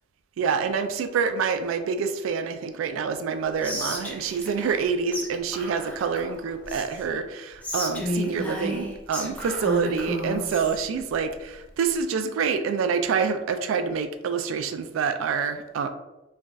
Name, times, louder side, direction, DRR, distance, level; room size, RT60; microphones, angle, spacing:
voice 1, 0.4-15.9, right 6 dB, 85° right, 7 dB, 0.3 m, -27 dB
Whispering, 3.6-4.9 5.1-5.3 5.5-7.1 7.6-10.8, left 1 dB, 10° left, 0.4 m, -32 dB
3.2 x 2.3 x 2.5 m, 0.99 s
head